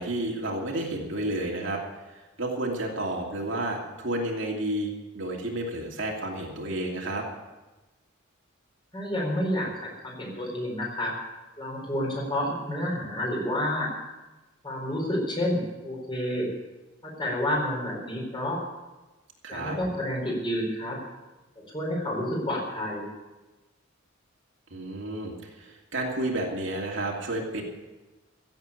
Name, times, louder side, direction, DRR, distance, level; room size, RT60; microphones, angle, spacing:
voice 1, 0.0-7.3 19.4-19.8 24.7-27.6, right 1 dB, 65° right, -1 dB, 2.6 m, -31 dB
voice 2, 8.9-11.2 11.6-13.9 14.6-16.5 17.0-18.6 19.5-21.0 21.7-23.1, left 1 dB, 25° left, -2 dB, 4.4 m, -29 dB
15.5 x 8.0 x 8.2 m, 1.1 s
head